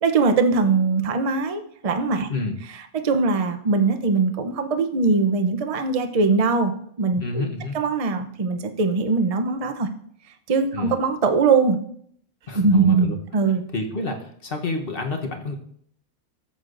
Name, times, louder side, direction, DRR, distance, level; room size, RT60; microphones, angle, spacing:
voice 1, 0.0-2.3 2.9-7.5 7.7-9.9 10.5-11.8 12.5-13.6, right 4 dB, 35° right, 7 dB, 0.6 m, -21 dB
voice 2, 7.2-7.8 10.7-10.9 12.5-13.2 13.7-15.5, left 3 dB, 45° left, 3 dB, 1.2 m, -29 dB
13.0 x 8.0 x 2.6 m, 0.64 s
omnidirectional pair, 1.5 m